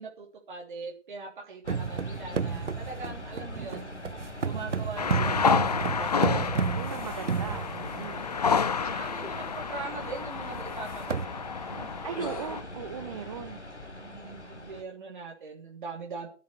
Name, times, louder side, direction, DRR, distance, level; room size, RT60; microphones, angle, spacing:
voice 1, 0.0-3.9 4.4-6.8 7.7-8.6 8.8-11.4 11.7-11.9 14.0-16.3, right 4 dB, 45° right, -1 dB, 3.2 m, -42 dB
sound 1, 1.6-14.8, left 2 dB, 70° left, 4.0 m, -42 dB
sound 2, 1.7-8.2 8.8-8.9 9.2-9.5 9.8-9.9 10.6-10.7 10.9-11.3, right 6 dB, 75° right, 0.7 m, -31 dB
sound 3, 5.0-12.6, left 6 dB, 35° left, 0.6 m, -30 dB
voice 2, 6.7-8.3 12.0-13.6, right 7 dB, 30° right, 8 dB, 1.0 m, -38 dB
14.5 x 9.4 x 6.5 m, 0.40 s
figure-of-eight pair, 140°, 36 cm